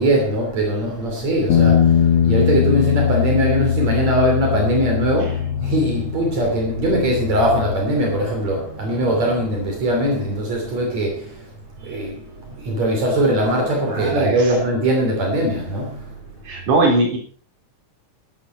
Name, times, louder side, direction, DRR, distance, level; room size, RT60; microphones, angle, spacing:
voice 1, 0.0-11.5 11.8-16.2, right 1 dB, 65° right, 4.2 m, -21 dB
sound 1, 1.5-7.7, left 8 dB, 55° left, 2.4 m, -20 dB
voice 2, 13.9-14.5 16.5-17.2, right 2 dB, 90° right, 5.2 m, -20 dB
15.5 x 12.0 x 4.4 m
omnidirectional pair, 3.4 m